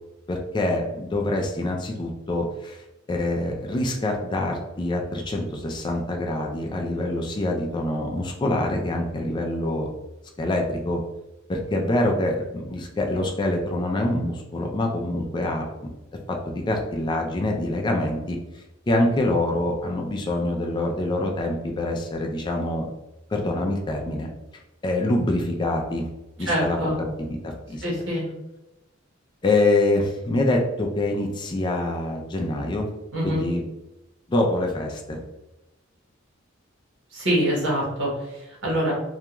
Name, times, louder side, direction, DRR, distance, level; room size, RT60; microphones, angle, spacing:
voice 1, 0.3-2.8 3.1-9.9 10.4-11.0 11.5-15.7 16.3-22.9 23.3-24.3 24.8-26.1 26.4-26.8 27.2-27.8 29.4-32.9 33.2-33.6 34.3-35.2, left 1 dB, 20° left, 1 dB, 0.3 m, -25 dB
voice 2, 26.5-27.0 27.8-28.2 33.1-33.4 37.1-38.9, equal, 60° right, -4 dB, 0.9 m, -25 dB
2.3 x 2.2 x 2.9 m, 0.97 s
head